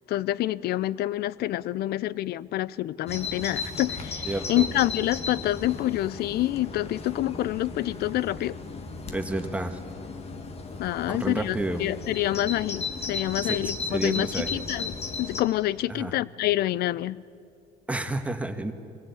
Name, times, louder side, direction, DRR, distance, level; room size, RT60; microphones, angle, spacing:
voice 1, 0.1-8.6 10.8-14.9 15.2-17.2, left 15 dB, 70° left, 21 dB, 0.5 m, -27 dB
Bird vocalization bird call bird song, 3.1-15.4, left 4 dB, 35° left, 1.8 m, -36 dB
voice 2, 4.2-4.7 9.1-9.8 11.1-11.8 13.4-14.6 15.9-16.1 17.9-18.7, right 2 dB, 10° right, 6 dB, 1.5 m, -31 dB
23.0 x 17.0 x 8.4 m, 2.5 s
cardioid pair, 110°, 17 cm